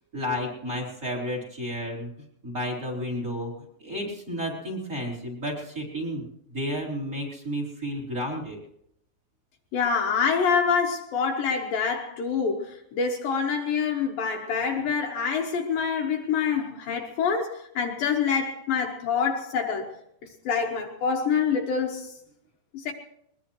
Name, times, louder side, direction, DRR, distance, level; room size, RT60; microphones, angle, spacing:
voice 1, 0.1-2.1 2.4-3.5 3.8-6.3 6.5-8.6, equal, 20° right, 4.3 m, -31 dB
voice 2, 9.7-19.9 20.5-22.1 22.7-22.9, left 6 dB, 70° left, 2.7 m, -26 dB
21.5 x 21.5 x 3.1 m
omnidirectional pair, 4.6 m